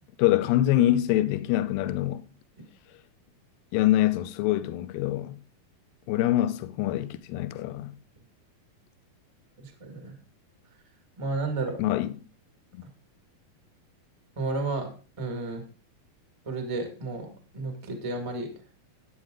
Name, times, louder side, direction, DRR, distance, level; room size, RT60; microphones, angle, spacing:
voice 1, 0.2-2.2 3.7-5.4 6.1-8.0 11.8-12.2, left 14 dB, 80° left, 2.4 m, -24 dB
voice 2, 9.6-10.1 11.2-11.8 14.4-14.9 15.2-15.6 16.4-18.5, right 3 dB, 25° right, 0.6 m, -32 dB
11.5 x 8.5 x 3.8 m
omnidirectional pair, 4.1 m